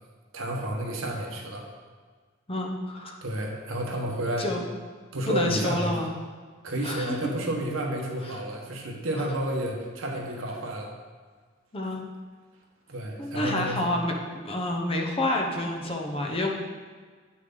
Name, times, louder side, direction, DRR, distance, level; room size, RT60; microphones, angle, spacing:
voice 1, 0.3-1.7 3.2-4.5 5.1-6.0 6.6-10.9 12.9-13.8, right 1 dB, 75° right, 0 dB, 1.3 m, -31 dB
voice 2, 2.5-3.2 4.4-4.6 5.3-6.1 6.8-7.2 11.7-12.0 13.2-14.1 14.4-16.5, left 1 dB, 30° left, 0 dB, 1.0 m, -28 dB
9.0 x 6.3 x 4.0 m, 1.6 s
head